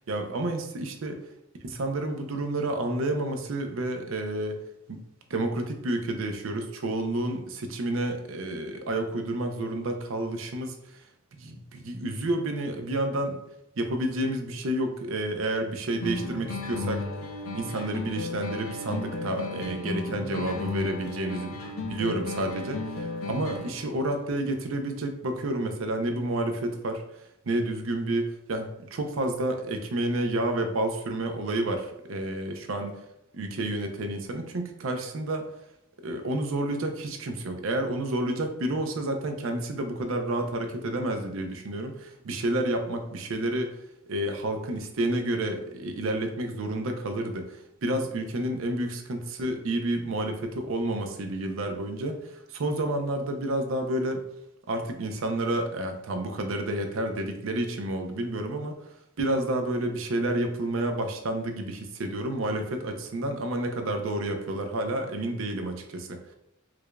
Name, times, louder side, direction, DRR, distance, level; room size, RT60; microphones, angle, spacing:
voice 1, 0.1-1.2 1.6-4.6 4.9-5.0 5.3-10.8 11.4-13.4 13.8-17.0 17.5-21.5 21.9-27.0 27.5-33.0 33.3-35.5 36.0-43.7 44.1-54.2 54.7-58.7 59.2-66.2, right 1 dB, 70° right, 5 dB, 0.5 m, -30 dB
sound 1, 16.0-24.0, left 3 dB, 70° left, 0.5 m, -34 dB
4.7 x 2.4 x 2.2 m, 0.82 s
head